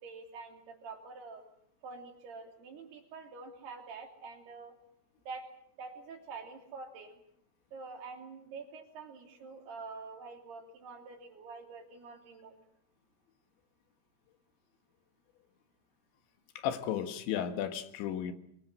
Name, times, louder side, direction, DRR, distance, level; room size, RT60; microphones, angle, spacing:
voice 1, 0.0-1.4 1.8-4.7 5.3-5.5 5.8-7.2 7.7-12.5, right 4 dB, 65° right, 3 dB, 4.9 m, -46 dB
voice 2, 16.6-18.3, left 9 dB, 90° left, 9 dB, 3.8 m, -34 dB
24.0 x 22.0 x 7.9 m, 0.71 s
omnidirectional pair, 5.0 m